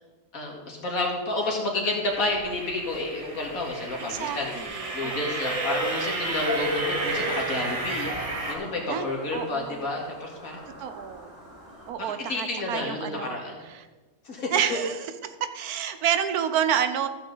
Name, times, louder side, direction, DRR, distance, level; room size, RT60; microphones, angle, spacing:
voice 1, 0.3-4.5 4.9-10.6 12.2-13.6 14.2-14.8, left 2 dB, 65° left, 0 dB, 2.4 m, -30 dB
sound 1, 2.0-8.5, right 2 dB, 25° right, 1.0 m, -32 dB
voice 2, 4.1-5.5 8.9-9.9 10.8-11.5 11.9-13.4 13.7-13.8 14.5-17.1, right 8 dB, 75° right, 9 dB, 1.2 m, -29 dB
sound 2, 5.4-11.9, equal, 50° right, 4.6 m, -35 dB
14.0 x 7.6 x 3.9 m, 1.3 s
omnidirectional pair, 1.6 m